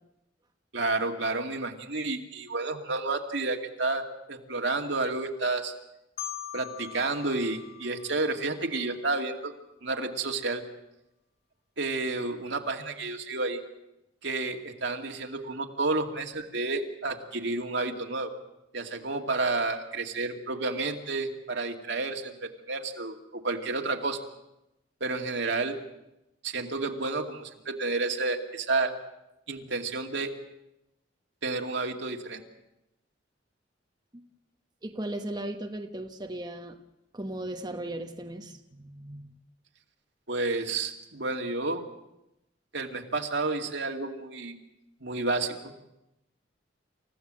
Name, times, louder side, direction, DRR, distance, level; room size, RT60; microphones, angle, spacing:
voice 1, 0.7-5.7 6.5-9.5 9.8-10.6 11.8-13.6 14.2-18.3 18.7-24.2 25.0-25.8 26.4-28.9 29.5-30.3 31.4-32.4 40.3-41.8 42.7-44.6 45.0-45.7, right 3 dB, 70° right, 3 dB, 2.3 m, -30 dB
Marimba xylophone, 6.2-9.0, left 12 dB, 50° left, 2.3 m, -42 dB
voice 2, 34.8-36.8 37.1-39.4, right 1 dB, 20° right, 3 dB, 1.2 m, -37 dB
28.5 x 15.5 x 7.6 m, 0.90 s
head